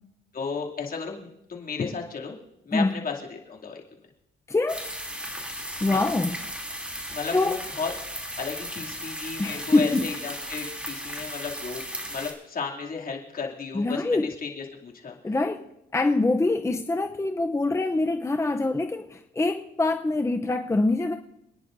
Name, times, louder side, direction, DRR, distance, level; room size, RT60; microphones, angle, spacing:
voice 1, 0.3-2.4 2.6-3.8 5.7-6.0 7.1-7.9 8.4-11.8 12.1-15.2, left 5 dB, 45° left, -1 dB, 2.7 m, -34 dB
voice 2, 4.5-4.9 5.8-6.4 7.3-7.6 9.4-10.1 13.7-14.3 15.2-15.6 15.9-21.1, left 2 dB, 15° left, 5 dB, 0.6 m, -24 dB
sound 1, 4.7-12.3, equal, 5° right, 2.9 m, -36 dB
27.5 x 10.0 x 2.6 m, 0.86 s
cardioid pair, 90°, 20 cm